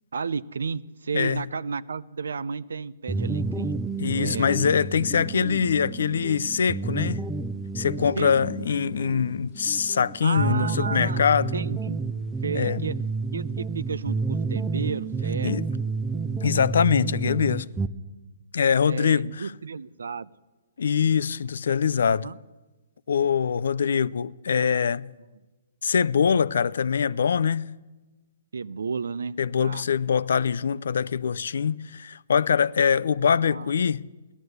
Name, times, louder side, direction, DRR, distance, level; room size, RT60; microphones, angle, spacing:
voice 1, 0.1-3.7 4.2-4.5 8.2-8.3 10.2-11.2 11.5-12.0 12.4-13.0 13.3-15.5 18.8-20.3 22.1-22.4 28.5-29.8 33.4-33.7, right 5 dB, 85° right, 0.5 m, -32 dB
sound 1, 3.1-17.9, right 4 dB, 10° right, 0.6 m, -30 dB
voice 2, 4.0-7.2 7.7-11.5 12.5-12.8 15.4-15.6 16.4-17.7 18.5-19.5 20.8-22.3 23.1-25.1 25.8-27.7 29.4-34.1, left 7 dB, 75° left, 0.4 m, -23 dB
16.0 x 11.0 x 7.9 m
hypercardioid pair, 140°, 0 cm